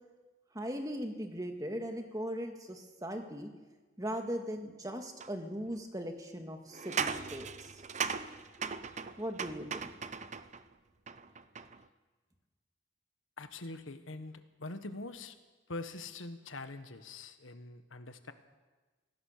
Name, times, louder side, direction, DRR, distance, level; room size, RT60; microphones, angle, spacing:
voice 1, 0.5-3.5 4.0-7.8 9.2-9.9, equal, 20° right, 4 dB, 2.0 m, -39 dB
sound 1, 5.2-5.3 6.7-10.6 11.1-11.8, right 6 dB, 35° right, 0.7 m, -38 dB
voice 2, 13.4-15.3 15.7-18.3, left 2 dB, 85° left, 9 dB, 1.5 m, -44 dB
24.5 x 17.5 x 6.7 m, 1.3 s
head